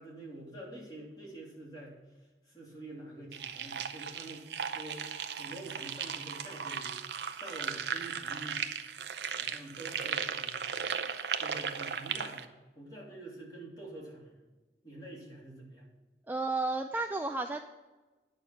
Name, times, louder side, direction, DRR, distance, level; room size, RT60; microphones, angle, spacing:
voice 1, 0.0-2.0 2.5-5.0 5.4-8.6 9.2-10.7 11.4-12.5 12.7-14.4 14.8-15.9, right 1 dB, 20° left, -4 dB, 2.9 m, -47 dB
sound 1, 3.3-12.4, right 7 dB, 75° right, 0.7 m, -36 dB
voice 2, 16.3-17.6, right 3 dB, 10° right, 5 dB, 0.3 m, -32 dB
9.6 x 6.5 x 5.8 m, 1.2 s
head